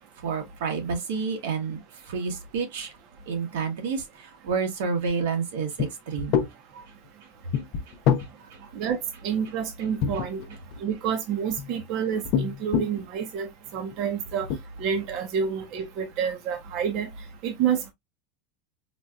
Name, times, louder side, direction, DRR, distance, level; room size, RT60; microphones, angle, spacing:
voice 1, 0.2-1.8 2.1-2.9 3.3-4.0 4.4-6.4 6.7-6.8, right 5 dB, 85° right, 1.1 m, -29 dB
sound 1, 5.8-5.9 6.2-6.5 7.5-8.3 10.0-10.8 11.3-11.7 12.2-13.0 13.7-13.9 14.3-14.6, left 8 dB, 45° left, 0.5 m, -25 dB
voice 2, 9.2-10.4 10.8-13.5 13.7-14.5 14.8-17.1 17.4-17.9, right 7 dB, 45° right, 0.7 m, -28 dB
4.1 x 2.3 x 2.3 m
supercardioid pair, 160°, 0 cm